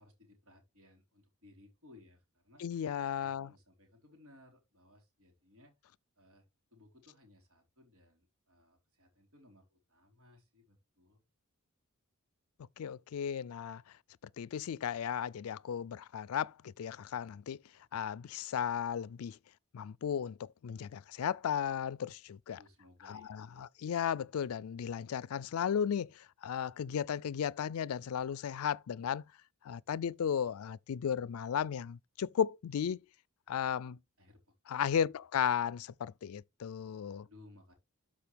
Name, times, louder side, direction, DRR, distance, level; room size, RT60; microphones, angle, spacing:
voice 1, 0.0-2.6 3.2-5.7 6.2-11.2 22.5-23.6 34.2-34.4 37.2-37.8, left 2 dB, 75° right, 4.1 m, -61 dB
voice 2, 2.6-3.5 12.8-13.8 14.4-17.6 17.9-19.4 19.7-22.6 23.1-23.5 23.8-29.2 29.6-33.0 33.5-34.0 34.7-37.3, left 8 dB, 75° left, 0.4 m, -35 dB
12.5 x 5.1 x 3.4 m
head